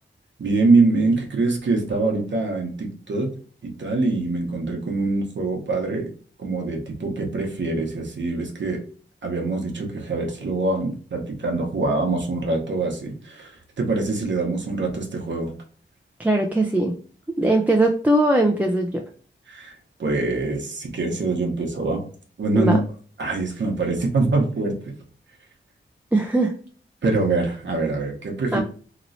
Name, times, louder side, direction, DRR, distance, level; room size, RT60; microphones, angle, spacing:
voice 1, 0.4-3.3 3.6-6.1 6.4-8.8 9.2-13.5 13.8-15.5 19.5-22.0 22.4-22.8 23.2-24.9 27.0-28.6, right 3 dB, 65° right, 1 dB, 0.9 m, -24 dB
voice 2, 16.2-16.9 17.4-19.0 22.6-22.8 26.1-26.5 28.5-28.6, right 1 dB, 10° right, 1 dB, 0.4 m, -20 dB
3.0 x 2.9 x 2.6 m, 0.43 s
cardioid pair, 70°, 20 cm